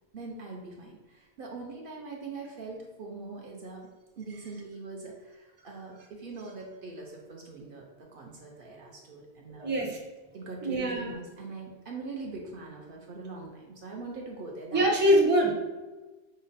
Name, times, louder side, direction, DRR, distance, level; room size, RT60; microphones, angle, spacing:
voice 1, 0.1-3.9 4.2-9.8 10.3-15.2, right 3 dB, 60° right, -1 dB, 0.8 m, -42 dB
voice 2, 9.6-10.0 10.6-11.1 14.7-15.5, right 1 dB, 10° right, -2 dB, 0.6 m, -23 dB
5.3 x 2.0 x 3.9 m, 1.2 s
omnidirectional pair, 1.1 m